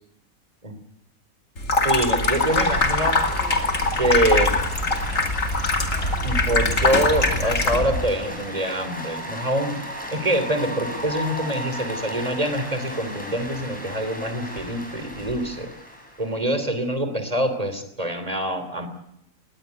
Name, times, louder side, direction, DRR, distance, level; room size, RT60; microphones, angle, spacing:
Water tap faucet / Sink (filling or washing), 1.6-8.0, left 2 dB, 65° left, 2.9 m, -22 dB
voice 1, 1.8-3.2 4.0-4.5 6.2-9.8 10.1-15.7 16.2-18.9, right 1 dB, 25° right, 9 dB, 3.3 m, -25 dB
sound 1, 2.2-16.5, equal, 5° left, 6.7 m, -36 dB
19.5 x 19.0 x 9.3 m, 0.75 s
omnidirectional pair, 1.5 m